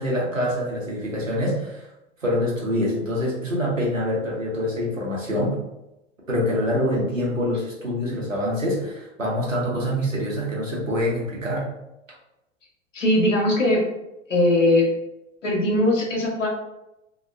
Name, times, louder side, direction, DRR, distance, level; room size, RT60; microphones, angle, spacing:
voice 1, 0.0-1.8 2.2-5.6 6.3-11.7, left 1 dB, 90° right, -4 dB, 0.9 m, -25 dB
voice 2, 12.9-13.8 14.3-14.9 15.4-16.5, left 1 dB, 75° left, -2 dB, 1.0 m, -20 dB
2.8 x 2.2 x 2.4 m, 0.90 s
figure-of-eight pair, 90°, 38 cm